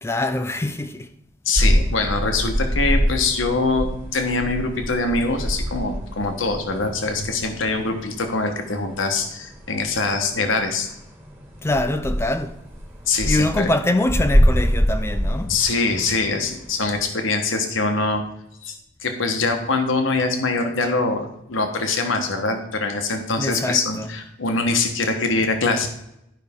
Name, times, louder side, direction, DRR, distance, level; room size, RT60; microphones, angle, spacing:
voice 1, 0.0-1.1 11.6-12.6 13.3-15.5 23.4-24.1, left 1 dB, 15° left, 0.3 m, -24 dB
voice 2, 1.4-10.9 13.1-13.7 15.4-18.2 18.6-18.7 19.0-25.9, left 3 dB, 80° left, 1.2 m, -23 dB
sound 1, 1.5-17.0, equal, 10° right, 1.6 m, -25 dB
12.0 x 5.6 x 3.6 m
head